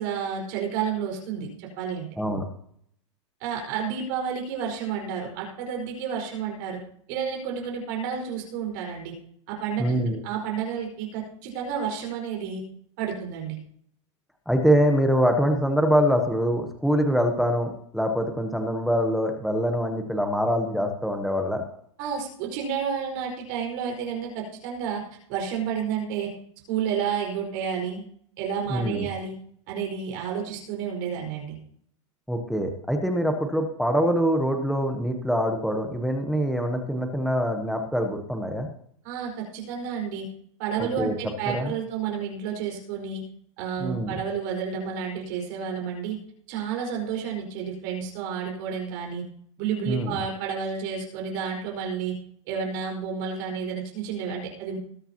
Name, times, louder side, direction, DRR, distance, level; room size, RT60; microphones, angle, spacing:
voice 1, 0.0-2.1 3.4-6.8 7.1-9.1 9.5-9.9 10.2-12.6 13.0-13.6 22.0-25.0 25.3-26.3 26.7-28.0 28.4-29.3 29.7-31.6 39.0-40.3 40.6-43.2 43.6-46.2 46.5-49.2 49.6-52.1 52.5-54.8, right 7 dB, 35° right, 0 dB, 4.7 m, -30 dB
voice 2, 9.8-10.2 14.5-21.6 28.7-29.1 32.3-38.7 40.8-41.1 41.5-41.7 43.8-44.2 49.9-50.2, equal, ahead, 4 dB, 0.9 m, -24 dB
20.5 x 8.8 x 2.9 m, 0.64 s
supercardioid pair, 170°, 17 cm